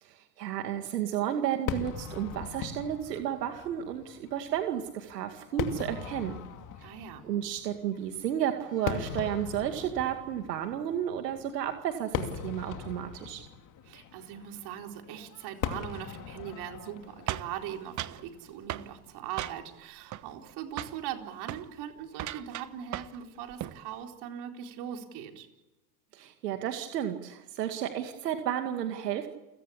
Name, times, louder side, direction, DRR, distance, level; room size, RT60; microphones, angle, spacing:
voice 1, 0.0-6.3 7.2-13.4 26.1-29.3, right 10 dB, 85° right, 6 dB, 2.2 m, -32 dB
Fireworks, 1.7-19.0, left 8 dB, 40° left, 2.7 m, -40 dB
voice 2, 6.8-7.2 13.8-25.5, right 10 dB, 55° right, 4 dB, 4.2 m, -40 dB
sound 1, 17.3-18.2 18.7-18.9 19.4-19.8 20.1-20.5 20.8-21.0 21.4-21.7 22.1-23.2 23.5-23.8, right 13 dB, 35° right, 1.2 m, -37 dB
29.5 x 17.0 x 8.6 m, 1.0 s
hypercardioid pair, 100°, 48 cm